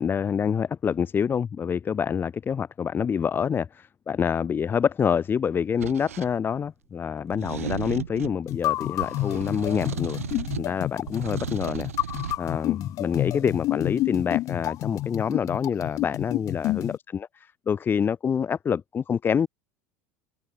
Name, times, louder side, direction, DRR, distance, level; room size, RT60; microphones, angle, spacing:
voice 1, 0.0-10.2 10.6-11.9 12.4-17.3 17.7-19.5, left 7 dB, 25° left, 0.9 m, -26 dB
sound 1, 5.8-6.3 7.3-8.4 9.0-10.7 11.1-12.4, right 9 dB, 75° right, 0.4 m, -35 dB
sound 2, 8.5-17.0, left 16 dB, 45° left, 0.6 m, -29 dB
figure-of-eight pair, 70°, 8 cm